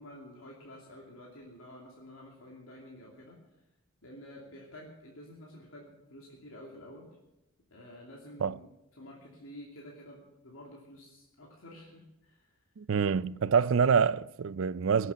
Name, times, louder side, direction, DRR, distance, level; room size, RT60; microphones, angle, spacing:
voice 1, 0.0-3.4 4.0-7.1 7.7-8.6 9.0-12.4, left 1 dB, 80° left, 2.7 m, -50 dB
voice 2, 12.8-15.1, right 6 dB, 65° right, 0.4 m, -26 dB
18.0 x 8.2 x 7.4 m
head